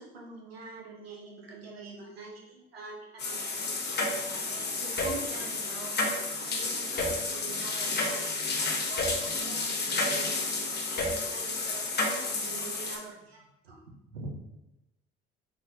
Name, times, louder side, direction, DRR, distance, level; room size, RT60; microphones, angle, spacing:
voice 1, 0.0-5.9 6.4-8.3 8.6-14.4, right 3 dB, 85° right, -1 dB, 0.8 m, -45 dB
sound 1, 3.2-13.0, left 3 dB, 35° left, 1.0 m, -31 dB
4.3 x 3.2 x 2.7 m, 0.95 s
figure-of-eight pair, 55°, 29 cm